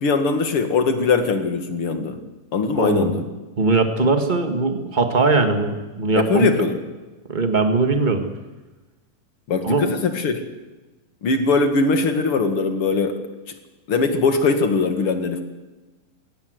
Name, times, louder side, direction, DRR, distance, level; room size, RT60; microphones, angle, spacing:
voice 1, 0.0-2.2 2.5-3.2 6.2-6.8 9.5-10.4 11.2-13.2 13.9-15.4, left 4 dB, 45° left, 7 dB, 2.4 m, -21 dB
voice 2, 2.7-3.2 3.6-6.5 7.3-8.3 9.6-9.9, right 3 dB, 55° right, 6 dB, 0.5 m, -20 dB
23.5 x 18.0 x 8.0 m, 1.2 s
omnidirectional pair, 4.1 m